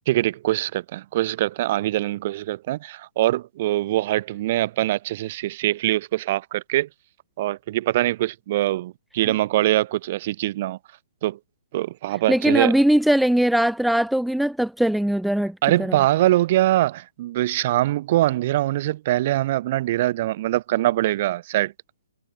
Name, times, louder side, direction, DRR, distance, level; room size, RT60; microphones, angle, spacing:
voice 1, 0.1-6.9 7.4-10.8 11.2-11.4 11.7-12.7 15.6-21.7, right 15 dB, 35° right, 4.4 m, -23 dB
voice 2, 12.3-16.0, right 1 dB, ahead, 0.4 m, -20 dB
figure-of-eight pair, 135°, 0 cm